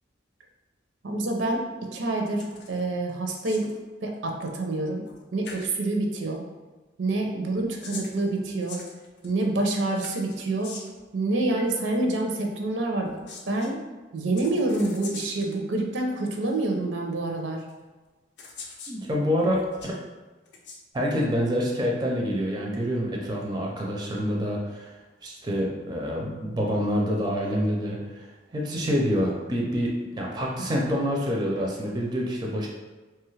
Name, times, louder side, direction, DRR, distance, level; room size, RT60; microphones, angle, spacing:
voice 1, 1.0-1.6 1.9-3.7 4.0-5.0 5.3-6.4 7.0-8.8 9.2-10.7 11.1-13.8 14.1-17.6, right 2 dB, 75° right, 2 dB, 0.5 m, -27 dB
sound 1, 2.4-2.8 3.1-3.8 5.1-5.2 5.4-5.7 7.5-9.4 10.0-11.0 13.0-13.7 14.4-15.6 16.5-16.6 17.7-17.8 18.4-19.0 19.5-20.0 20.5-20.8, left 4 dB, 65° left, 0.5 m, -43 dB
voice 2, 18.9-19.9 20.9-24.9 25.2-28.3 28.5-32.7, equal, 20° right, -2 dB, 0.4 m, -27 dB
2.9 x 2.3 x 3.1 m, 1.2 s
head